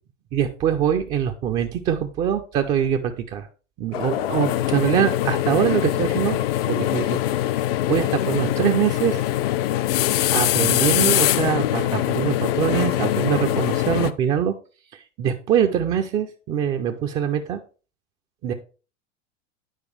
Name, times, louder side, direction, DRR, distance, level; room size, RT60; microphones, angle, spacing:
voice 1, 0.3-3.5 3.8-6.4 6.7-7.2 7.9-9.2 10.3-14.5 15.2-17.6 18.4-18.5, right 9 dB, 20° right, 6 dB, 0.3 m, -23 dB
sound 1, 3.9-14.1, left 13 dB, 50° left, 0.4 m, -23 dB
9.1 x 4.7 x 3.1 m, 0.35 s
figure-of-eight pair, 90°, 38 cm